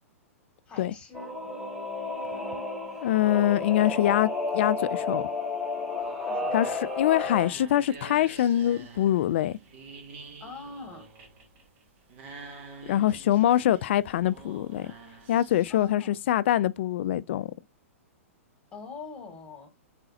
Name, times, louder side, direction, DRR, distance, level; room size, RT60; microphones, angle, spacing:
voice 1, 0.7-1.4 6.2-6.7 10.4-11.1 15.7-16.1 18.7-19.7, left 4 dB, 15° left, 2.1 m, -43 dB
Singing / Musical instrument, 1.1-7.5, left 3 dB, ahead, 2.1 m, -32 dB
voice 2, 3.0-5.3 6.5-9.6 12.9-14.9 15.3-17.5, left 12 dB, 55° left, 0.3 m, -24 dB
sound 1, 6.8-15.9, right 3 dB, 50° right, 1.6 m, -47 dB
4.1 x 3.8 x 2.8 m
figure-of-eight pair, 110°, 8 cm